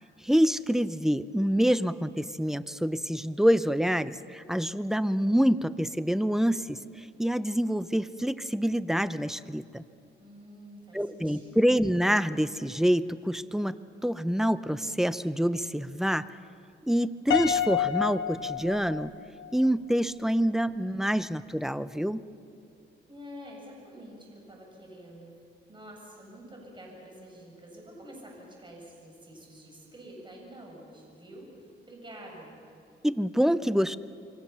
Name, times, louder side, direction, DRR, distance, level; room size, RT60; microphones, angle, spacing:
voice 1, 0.2-9.8 10.9-13.8 14.0-16.3 16.8-19.1 19.5-22.2 33.0-34.0, equal, ahead, 15 dB, 0.7 m, -26 dB
voice 2, 10.2-11.8 23.1-32.6, equal, 25° right, -1 dB, 7.4 m, -48 dB
Piano, 17.3-19.5, left 10 dB, 65° left, 1.6 m, -29 dB
27.0 x 23.0 x 7.1 m, 2.4 s
cardioid pair, 90°, 20 cm